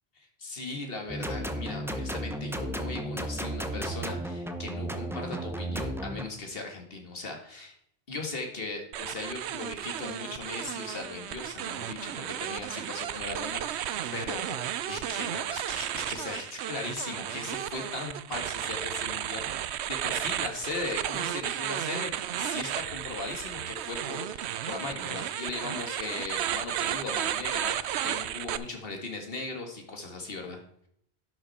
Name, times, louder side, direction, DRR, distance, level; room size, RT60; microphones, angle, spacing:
voice 1, 0.2-7.8 8.1-30.6, left 3 dB, 60° left, 3 dB, 2.0 m, -38 dB
sound 1, 1.1-6.3, right 1 dB, 5° right, 0.7 m, -34 dB
sound 2, 8.9-28.6, right 11 dB, 85° right, 0.8 m, -33 dB
11.5 x 6.3 x 4.3 m, 0.70 s
omnidirectional pair, 1.1 m